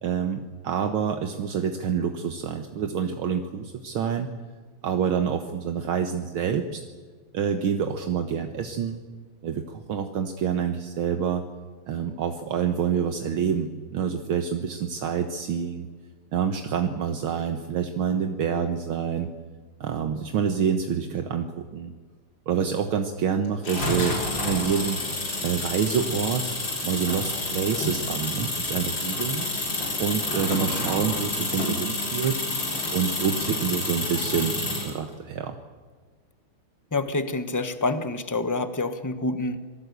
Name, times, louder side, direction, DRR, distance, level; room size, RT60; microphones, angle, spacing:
voice 1, 0.0-4.3 4.8-6.8 7.3-9.0 9.4-11.4 11.9-15.9 16.3-19.3 19.8-21.9 22.5-25.0 25.4-26.5 26.8-29.5 30.0-32.4 32.9-35.6, right 7 dB, 70° right, 6 dB, 2.0 m, -27 dB
sound 1, 23.6-35.0, left 2 dB, 55° left, 5.0 m, -29 dB
voice 2, 36.9-39.6, left 2 dB, 15° left, 10 dB, 0.7 m, -27 dB
26.0 x 18.5 x 8.2 m, 1.5 s
omnidirectional pair, 2.4 m